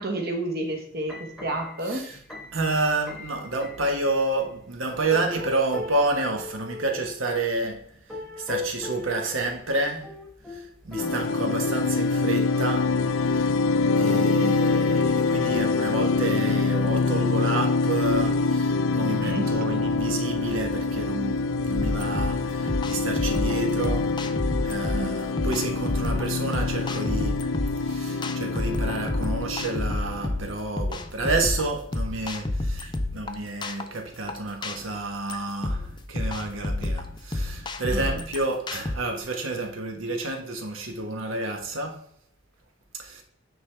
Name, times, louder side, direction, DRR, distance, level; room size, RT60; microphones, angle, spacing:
voice 1, 0.0-2.1 11.0-11.5 19.2-19.6 24.9-25.2 37.9-38.2, right 1 dB, 50° right, 1.3 m, -31 dB
sound 1, 0.9-4.0 4.6-4.7 5.1-7.0 7.9-9.6 10.0-12.4 12.8-13.2 13.8-13.9, left 3 dB, ahead, 1.1 m, -38 dB
voice 2, 2.5-7.9 8.4-10.1 10.5-12.9 13.2-13.5 14.0-24.1 24.5-27.4 27.8-42.0 42.9-43.2, right 2 dB, 80° right, 1.2 m, -29 dB
sound 2, 11.0-30.5, left 3 dB, 85° left, 0.4 m, -25 dB
sound 3, 21.7-39.0, left 2 dB, 20° left, 0.5 m, -30 dB
9.3 x 3.6 x 3.3 m
head